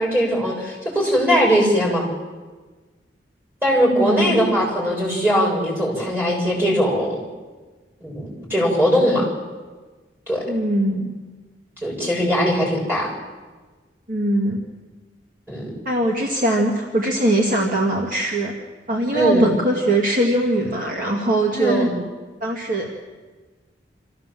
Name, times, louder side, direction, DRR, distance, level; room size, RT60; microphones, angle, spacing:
voice 1, 0.0-2.1 3.6-7.2 8.0-9.3 10.3-10.5 11.8-13.1 15.5-15.7 19.1-19.5 21.5-21.9, equal, 10° right, -3 dB, 7.1 m, -20 dB
voice 2, 4.0-4.4 10.5-11.1 14.1-14.6 15.8-18.5 18.9-21.9 22.4-22.9, right 1 dB, 45° right, -1 dB, 2.3 m, -21 dB
26.5 x 15.0 x 7.6 m, 1.3 s
head